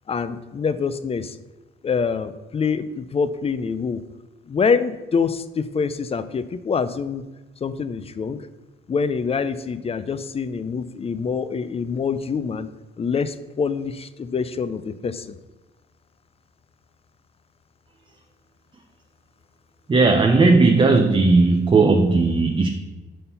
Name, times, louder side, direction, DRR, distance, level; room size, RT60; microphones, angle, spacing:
voice 1, 0.1-1.4 1.8-4.0 4.5-7.2 7.6-8.4 8.9-12.7 13.0-15.4, left 5 dB, 30° left, 13 dB, 0.4 m, -25 dB
voice 2, 19.9-22.7, right 3 dB, 25° right, 4 dB, 0.6 m, -16 dB
5.6 x 4.2 x 5.4 m, 1.1 s
cardioid pair, 90°, 20 cm